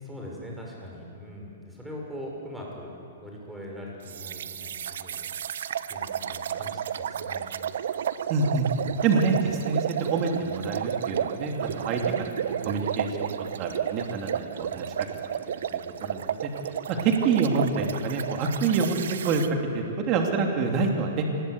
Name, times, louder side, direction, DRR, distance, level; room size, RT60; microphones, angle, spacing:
voice 1, 0.0-2.9 3.2-5.3 5.9-7.5 8.7-9.1 16.9-17.1, equal, 5° right, -2 dB, 6.0 m, -41 dB
sound 1, 4.1-19.5, right 9 dB, 70° right, 1.0 m, -32 dB
voice 2, 8.3-8.7 9.0-12.0 12.4-13.3 13.6-14.9 15.5-19.5 19.7-21.3, right 4 dB, 35° right, 2 dB, 3.1 m, -27 dB
26.5 x 21.0 x 8.2 m, 2.7 s
hypercardioid pair, 145°, 0 cm